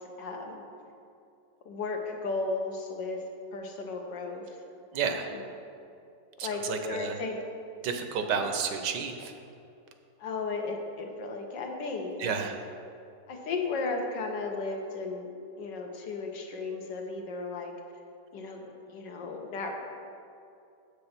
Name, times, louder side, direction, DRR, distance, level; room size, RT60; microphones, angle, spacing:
voice 1, 0.2-0.6 1.6-3.3 3.5-4.5 5.0-5.4 6.4-7.4 8.3-8.5 10.2-12.4 13.3-15.3 15.6-17.7 18.3-19.7, left 3 dB, 75° left, 2 dB, 1.7 m, -35 dB
voice 2, 4.9-5.3 6.4-7.1 7.8-9.3 12.2-12.6, right 6 dB, 75° right, 6 dB, 1.3 m, -31 dB
7.7 x 6.7 x 5.8 m, 2.5 s
omnidirectional pair, 2.0 m